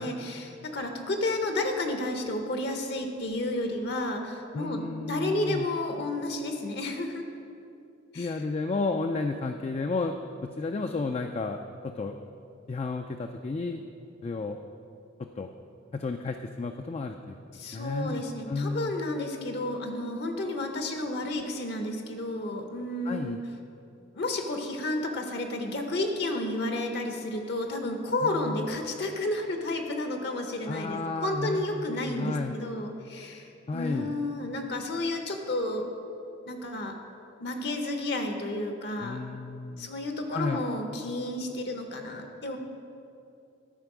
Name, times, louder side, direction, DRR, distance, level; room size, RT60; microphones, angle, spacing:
voice 1, 0.0-7.2 8.1-8.3 17.5-23.4 24.1-35.9 36.5-37.0 37.4-39.2 39.8-42.6, left 2 dB, 60° left, 5 dB, 0.8 m, -31 dB
voice 2, 4.5-5.7 8.2-10.2 10.4-12.2 12.7-13.8 14.2-14.6 15.2-15.5 15.9-18.9 23.1-23.4 28.2-28.7 30.7-32.5 33.7-34.1 39.0-39.9 40.3-40.6, left 3 dB, 35° left, 5 dB, 0.3 m, -32 dB
13.0 x 4.6 x 6.0 m, 2.7 s
head